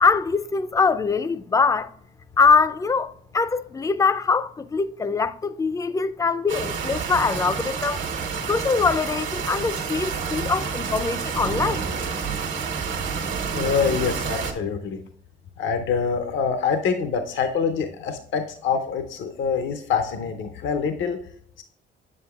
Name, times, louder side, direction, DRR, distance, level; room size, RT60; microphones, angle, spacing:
voice 1, 0.0-1.9 2.4-8.0 8.5-11.8, left 4 dB, 15° left, 0.3 m, -22 dB
sound 1, 6.5-14.5, right 6 dB, 75° right, 1.2 m, -29 dB
voice 2, 13.5-15.0 15.6-21.2 21.6-21.7, left 6 dB, 75° left, 0.6 m, -25 dB
7.9 x 7.3 x 2.3 m
cardioid pair, 90°, 20 cm